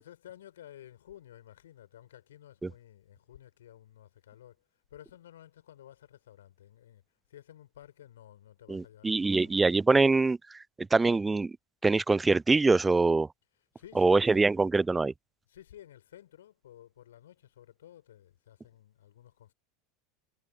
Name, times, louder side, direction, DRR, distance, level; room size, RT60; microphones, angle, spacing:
voice 1, 0.0-9.6 13.5-14.5 15.5-19.5, left 11 dB, 65° left, 4.7 m, -53 dB
voice 2, 8.7-10.4 10.8-11.5 11.8-13.3 14.0-15.1, right 3 dB, 10° right, 0.4 m, -24 dB
figure-of-eight pair, 80°, 0 cm